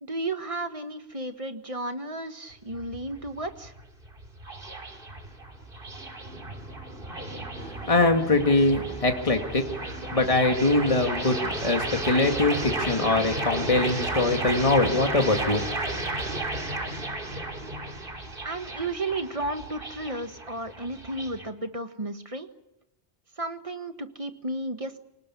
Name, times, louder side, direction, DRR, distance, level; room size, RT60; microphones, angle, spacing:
voice 1, 0.0-3.7 18.4-22.5 23.4-25.0, right 2 dB, 30° right, 7 dB, 1.7 m, -33 dB
sound 1, 2.5-21.5, right 2 dB, 60° right, 3.0 m, -33 dB
voice 2, 7.6-9.6 10.1-15.8, left 2 dB, 35° left, 4 dB, 2.1 m, -23 dB
26.5 x 18.5 x 8.5 m, 0.88 s
omnidirectional pair, 1.1 m